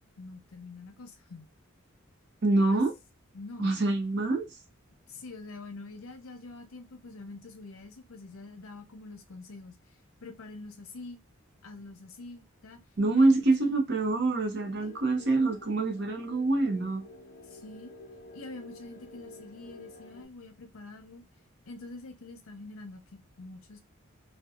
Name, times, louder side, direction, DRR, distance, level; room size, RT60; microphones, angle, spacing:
voice 1, 0.2-1.5 2.7-2.8 3.3-3.7 5.1-9.8 10.2-11.2 11.6-12.8 13.1-13.8 14.8-15.0 17.5-17.9 18.3-21.2 21.7-23.8, left 3 dB, 80° left, 0.7 m, -46 dB
voice 2, 2.4-2.9 3.6-4.6 13.0-17.1, right 2 dB, 50° right, 0.7 m, -25 dB
sound 1, 14.6-20.2, left 2 dB, 40° left, 0.5 m, -50 dB
2.7 x 2.2 x 2.3 m
head